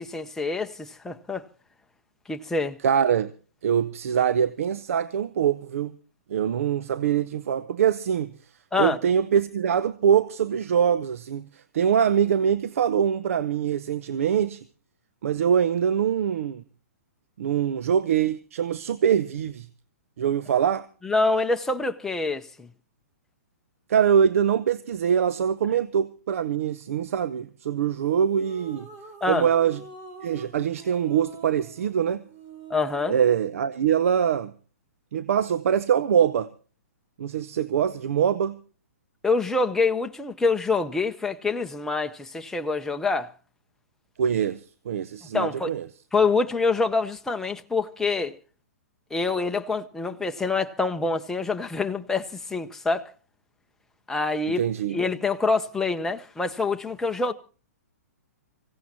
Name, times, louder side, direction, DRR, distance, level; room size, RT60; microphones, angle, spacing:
voice 1, 0.0-1.4 2.3-2.8 8.7-9.0 21.0-22.7 29.2-29.5 32.7-33.2 39.2-43.3 45.3-45.7 46.1-48.4 49.1-53.1 54.1-54.6 54.9-57.3, left 3 dB, 5° left, 0.8 m, -26 dB
voice 2, 2.8-3.3 3.6-6.0 6.3-8.3 8.8-14.6 15.2-16.6 17.4-19.7 20.2-20.8 23.9-28.9 29.3-29.8 30.2-32.2 33.1-34.5 35.1-36.5 37.2-38.6 44.2-44.6 44.9-45.8 54.6-55.0, right 8 dB, 60° right, 0.8 m, -23 dB
sound 1, 28.0-33.4, right 3 dB, 35° right, 5.3 m, -46 dB
25.0 x 16.0 x 2.8 m
figure-of-eight pair, 125°, 8 cm